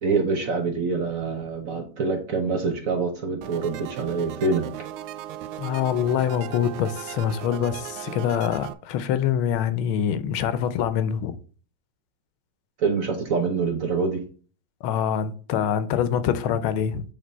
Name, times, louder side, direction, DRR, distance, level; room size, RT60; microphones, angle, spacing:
voice 1, 0.0-4.7 12.8-14.2, right 4 dB, 55° right, 0.9 m, -25 dB
sound 1, 3.4-8.7, right 12 dB, 85° right, 1.4 m, -37 dB
voice 2, 5.6-11.3 14.8-17.0, left 9 dB, 90° left, 1.5 m, -25 dB
8.6 x 3.4 x 4.0 m
omnidirectional pair, 2.2 m